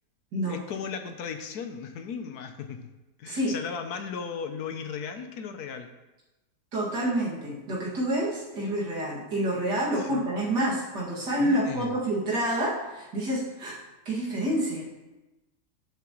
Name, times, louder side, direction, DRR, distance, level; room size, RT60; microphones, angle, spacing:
voice 1, 0.5-2.9 3.2-5.9 10.0-10.3 11.4-11.9, left 6 dB, 70° left, 7 dB, 1.2 m, -36 dB
voice 2, 6.7-13.8 14.1-14.8, right 1 dB, 75° right, -5 dB, 2.8 m, -28 dB
11.5 x 7.4 x 3.1 m, 1.1 s
omnidirectional pair, 1.8 m